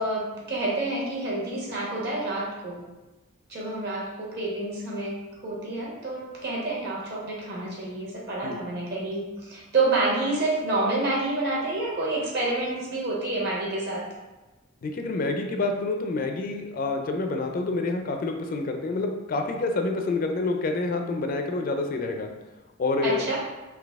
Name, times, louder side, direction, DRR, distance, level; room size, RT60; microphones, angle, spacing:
voice 1, 0.0-2.8 3.5-14.0 23.0-23.4, right 2 dB, 55° right, -4 dB, 1.2 m, -28 dB
voice 2, 14.8-22.3 22.8-23.3, left 3 dB, 45° left, 4 dB, 0.4 m, -27 dB
3.9 x 2.9 x 3.5 m, 1.1 s
head